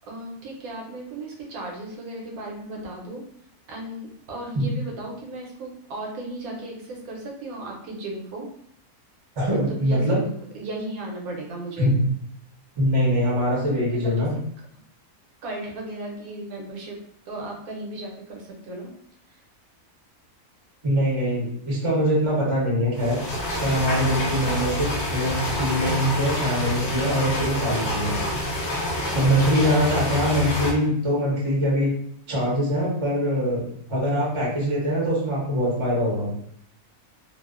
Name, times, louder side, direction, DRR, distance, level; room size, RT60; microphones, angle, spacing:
voice 1, 0.1-3.2 3.7-8.5 9.5-12.0 13.7-14.3 15.4-17.0 17.3-18.9 19.3-19.4, right 1 dB, 80° right, -1 dB, 1.1 m, -36 dB
voice 2, 9.4-10.2 11.8-12.0 12.8-14.3 20.8-23.2 23.6-28.1 29.1-31.9 32.3-36.3, equal, 40° right, -5 dB, 0.4 m, -23 dB
sound 1, 22.9-30.7, left 1 dB, 55° left, 0.9 m, -27 dB
2.7 x 2.0 x 2.3 m, 0.68 s
omnidirectional pair, 1.5 m